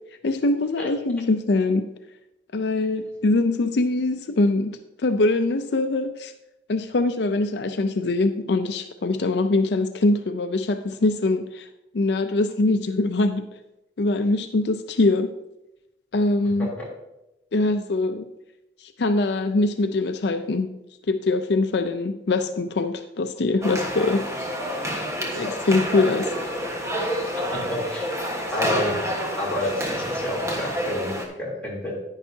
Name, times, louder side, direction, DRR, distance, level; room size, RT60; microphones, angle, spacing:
voice 1, 0.2-1.9 2.5-6.3 6.7-11.7 11.9-13.5 14.0-15.3 16.1-16.7 17.5-18.3 18.8-20.7 21.1-24.2 25.4-26.3, left 2 dB, 70° left, 8 dB, 0.5 m, -23 dB
sound 1, 23.6-31.2, equal, 15° right, 1.3 m, -28 dB
voice 2, 27.3-28.1 28.5-28.9 29.4-32.0, left 1 dB, 10° left, -6 dB, 3.2 m, -29 dB
10.5 x 9.8 x 2.8 m, 0.92 s
head